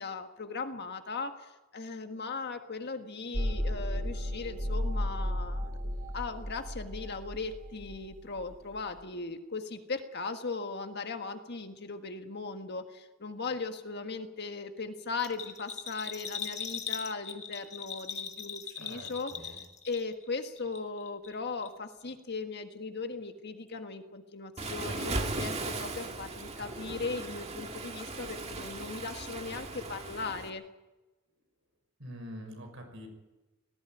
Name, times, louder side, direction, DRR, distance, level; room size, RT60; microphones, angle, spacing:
voice 1, 0.0-19.6 19.8-30.6, left 4 dB, 50° left, 7 dB, 1.6 m, -38 dB
sound 1, 3.3-8.8, equal, 45° right, 4.0 m, -34 dB
Bell, 15.2-20.3 20.6-21.3 21.6-21.7, left 7 dB, 35° left, 1.6 m, -40 dB
voice 2, 18.8-19.6 32.0-33.1, equal, 65° right, 4 dB, 5.9 m, -45 dB
Waves surf, 24.6-30.5, right 2 dB, 30° right, 1.9 m, -37 dB
18.5 x 15.5 x 9.2 m, 1.1 s
head